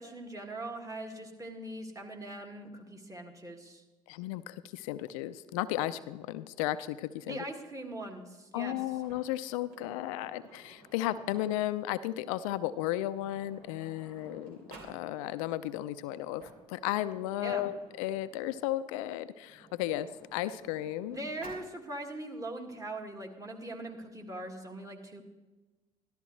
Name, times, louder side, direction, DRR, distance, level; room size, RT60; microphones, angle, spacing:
voice 1, 0.0-3.8 7.3-8.8 17.4-17.7 21.1-25.2, right 1 dB, 20° right, 1 dB, 2.0 m, -41 dB
voice 2, 4.1-7.4 8.5-21.2, left 13 dB, 75° left, 14 dB, 0.4 m, -34 dB
Sliding door, 8.9-11.8 12.8-12.9 13.1-15.0 16.1-18.6 19.4-21.7, right 2 dB, 60° right, 3.3 m, -54 dB
13.0 x 12.5 x 3.2 m, 1.2 s
hypercardioid pair, 55°, 18 cm